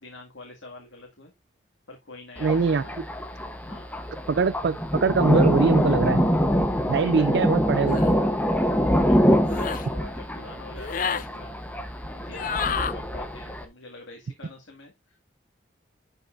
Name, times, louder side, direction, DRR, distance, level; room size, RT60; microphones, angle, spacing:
voice 1, 0.0-1.3 1.9-3.0 3.7-3.9 6.8-7.5 8.9-11.6 12.1-15.2, left 2 dB, 90° left, 2.0 m, -45 dB
Thunder, 2.4-13.7, equal, 10° left, 0.8 m, -25 dB
voice 2, 2.4-2.8 4.3-6.2 6.9-8.0, right 5 dB, 60° right, 0.4 m, -22 dB
sound 1, 7.9-8.1 9.4-9.9 10.8-11.3 12.3-12.9, left 7 dB, 45° left, 0.4 m, -29 dB
11.0 x 5.5 x 2.5 m
head